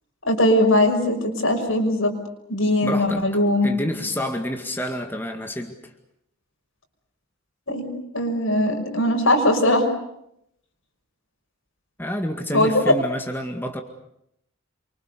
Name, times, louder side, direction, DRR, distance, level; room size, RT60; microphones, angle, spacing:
voice 1, 0.3-2.1 2.5-3.7 7.7-7.9 8.1-9.9 12.5-12.8, left 1 dB, 75° left, 4 dB, 5.9 m, -20 dB
voice 2, 2.8-5.9 12.0-13.8, equal, 10° left, 4 dB, 2.0 m, -29 dB
28.5 x 25.0 x 6.8 m, 0.76 s
head